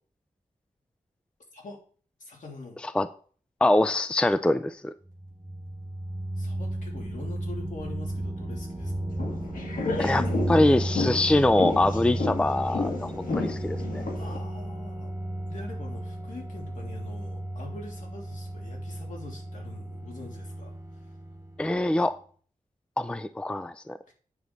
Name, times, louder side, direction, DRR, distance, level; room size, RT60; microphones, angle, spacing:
voice 1, 2.2-2.8 6.4-9.2 10.0-10.4 14.1-15.1 15.4-21.1 24.1-24.2, left 3 dB, 70° left, 3.0 m, -44 dB
voice 2, 3.6-4.9 10.0-14.0 21.6-22.1 23.0-24.0, left 1 dB, 5° left, 0.4 m, -24 dB
sound 1, 5.0-21.8, right 1 dB, 20° right, 3.4 m, -34 dB
sound 2, 9.1-14.4, left 3 dB, 85° left, 2.0 m, -32 dB
9.2 x 6.4 x 4.0 m
wide cardioid pair, 110°, 14 cm